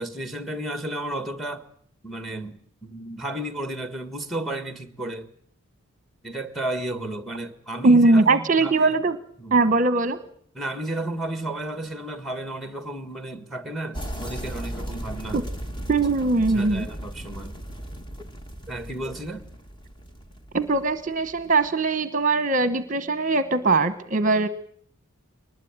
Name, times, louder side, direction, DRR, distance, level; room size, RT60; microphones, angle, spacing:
voice 1, 0.0-1.6 2.0-5.3 6.2-9.0 9.4-9.7 10.5-15.5 16.5-17.6 18.7-19.5, right 1 dB, ahead, 1.6 m, -33 dB
voice 2, 7.8-9.2 9.5-10.2 15.3-15.4 15.9-16.9 20.5-24.5, right 3 dB, 35° right, 1.0 m, -20 dB
sound 1, 13.9-21.7, equal, 20° left, 1.8 m, -36 dB
23.5 x 20.0 x 8.9 m
head